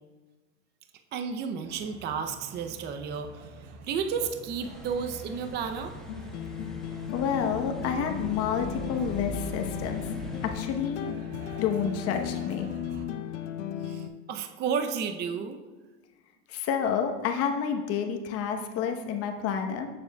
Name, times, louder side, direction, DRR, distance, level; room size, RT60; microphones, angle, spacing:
voice 1, 1.1-3.5 3.8-5.9 13.8-15.6, right 6 dB, 30° right, 7 dB, 0.5 m, -32 dB
sound 1, 1.6-13.1, right 3 dB, 70° right, 1.1 m, -46 dB
sound 2, 4.6-10.5, equal, ahead, 1.0 m, -42 dB
sound 3, 6.1-14.1, left 10 dB, 85° left, 0.7 m, -36 dB
voice 2, 7.1-10.1 10.4-11.0 11.6-12.7 16.5-19.9, left 7 dB, 45° left, 4 dB, 0.9 m, -29 dB
13.0 x 7.0 x 2.2 m, 1.3 s
supercardioid pair, 130°, 34 cm